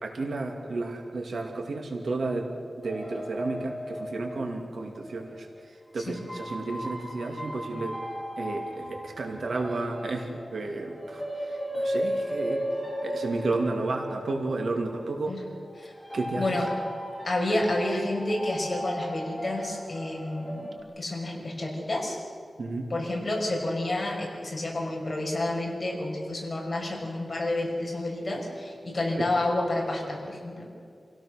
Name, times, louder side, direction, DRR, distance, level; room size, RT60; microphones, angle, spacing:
voice 1, 0.0-2.5 2.8-5.5 5.9-8.0 8.4-12.6 13.0-15.4 16.1-16.6 22.6-22.9, right 3 dB, 85° right, 2 dB, 2.4 m, -32 dB
sound 1, 2.8-5.4 6.1-20.8, equal, 5° left, 3.4 m, -36 dB
voice 2, 17.2-22.2 22.9-30.7, left 1 dB, 35° left, -1 dB, 5.7 m, -30 dB
27.0 x 17.0 x 6.4 m, 2.3 s
wide cardioid pair, 120°, 0 cm